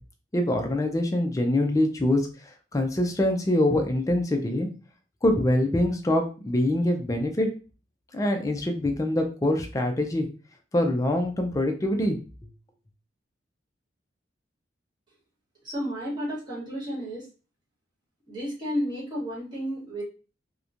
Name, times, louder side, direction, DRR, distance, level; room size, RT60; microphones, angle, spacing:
voice 1, 0.3-2.3 2.7-4.7 5.2-7.5 8.1-10.3 10.7-12.2, left 1 dB, 15° left, 4 dB, 0.4 m, -24 dB
voice 2, 15.6-17.3 18.3-20.0, equal, 25° right, -6 dB, 1.2 m, -32 dB
2.9 x 2.1 x 2.4 m, 0.35 s
head